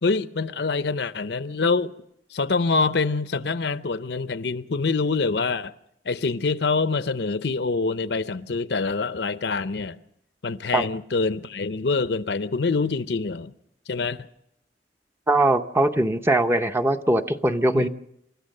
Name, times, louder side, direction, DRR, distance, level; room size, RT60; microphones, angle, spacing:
voice 1, 0.0-1.9 2.3-5.7 6.1-10.0 10.4-13.5 13.9-14.2 17.8-17.9, left 4 dB, 65° left, 0.7 m, -25 dB
voice 2, 15.3-17.9, right 1 dB, 15° right, 0.7 m, -21 dB
29.0 x 14.0 x 6.6 m
head